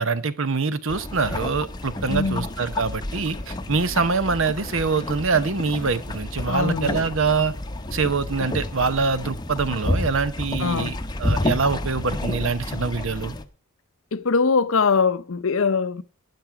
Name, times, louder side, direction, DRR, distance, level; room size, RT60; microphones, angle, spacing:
voice 1, 0.0-7.5 7.9-13.4, right 4 dB, 60° right, 0.9 m, -24 dB
sound 1, 0.9-13.4, left 1 dB, 20° left, 0.8 m, -30 dB
voice 2, 2.1-2.4 6.5-7.0 10.6-10.9 14.1-16.0, left 5 dB, 65° left, 0.7 m, -22 dB
12.0 x 9.4 x 4.8 m
head